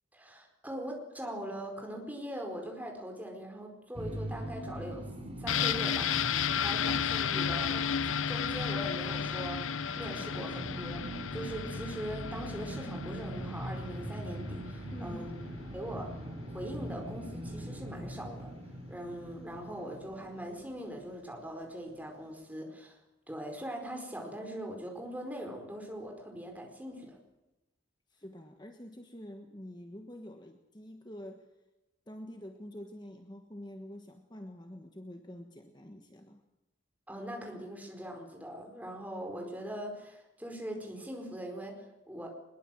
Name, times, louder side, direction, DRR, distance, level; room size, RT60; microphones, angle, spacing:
voice 1, 0.1-5.1 5.4-6.1 6.5-9.7 9.9-15.3 15.7-16.1 16.5-18.5 18.9-23.0 23.3-27.2 37.1-42.3, right 1 dB, 10° right, 2 dB, 4.7 m, -41 dB
sound 1, 3.9-21.1, equal, 30° right, 3.4 m, -42 dB
sound 2, 5.5-15.1 15.4-15.5, left 7 dB, 85° left, 0.8 m, -33 dB
voice 2, 14.9-15.3 28.1-31.5 32.1-36.4, left 1 dB, 20° left, 5 dB, 1.4 m, -47 dB
22.5 x 21.5 x 7.8 m, 0.99 s
head